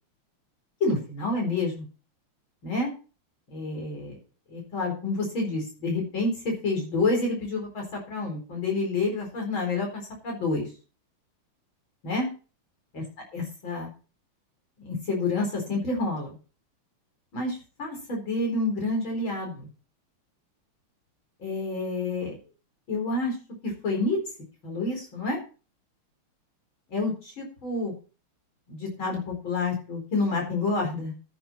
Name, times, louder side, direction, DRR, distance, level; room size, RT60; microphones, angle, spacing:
voice 1, 0.8-1.9 2.6-2.9 3.5-4.2 4.5-10.7 12.0-12.3 12.9-13.0 13.3-13.9 14.8-16.3 17.3-19.7 21.4-22.4 22.9-23.3 23.6-24.2 24.6-25.4 26.9-27.9 28.7-31.1, left 3 dB, 65° left, 0 dB, 5.2 m, -28 dB
14.0 x 8.0 x 4.4 m, 0.35 s
omnidirectional pair, 2.4 m